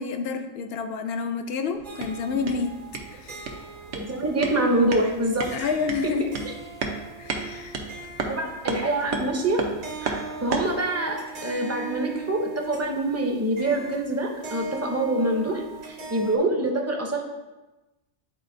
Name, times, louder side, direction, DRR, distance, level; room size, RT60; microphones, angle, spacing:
voice 1, 0.0-2.8 3.1-3.5 5.5-6.3 7.2-7.8, left 5 dB, 65° left, 6 dB, 0.6 m, -29 dB
sound 1, 1.7-10.8, right 4 dB, 70° right, 1.1 m, -34 dB
sound 2, 1.8-16.4, right 4 dB, 45° right, 0.8 m, -41 dB
voice 2, 3.9-5.7 8.3-9.6 10.0-17.2, right 1 dB, 20° right, 1 dB, 0.5 m, -25 dB
9.3 x 4.1 x 2.6 m, 1.1 s
omnidirectional pair, 1.3 m